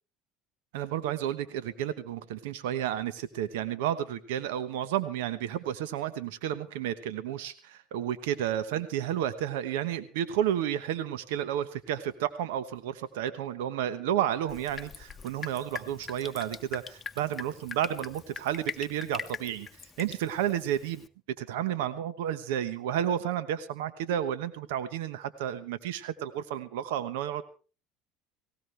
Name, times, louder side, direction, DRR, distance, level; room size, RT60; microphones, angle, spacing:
voice 1, 0.7-21.0 21.4-27.4, right 10 dB, 85° right, 13 dB, 1.0 m, -31 dB
Drip, 14.5-21.1, left 5 dB, 25° left, 1.3 m, -42 dB
18.5 x 17.5 x 3.3 m, 0.36 s
supercardioid pair, 100°, 0 cm